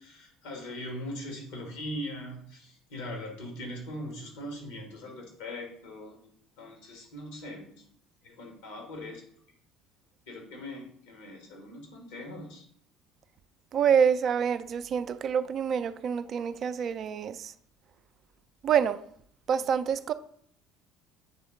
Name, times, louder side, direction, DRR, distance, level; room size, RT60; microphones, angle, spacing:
voice 1, 0.0-6.3 6.6-7.8 8.2-9.2 10.3-12.7, left 1 dB, 75° left, 1.7 m, -41 dB
voice 2, 13.7-17.5 18.6-19.0 19.5-20.1, right 7 dB, 45° right, 0.4 m, -26 dB
8.0 x 3.5 x 3.8 m
hypercardioid pair, 60°, 0 cm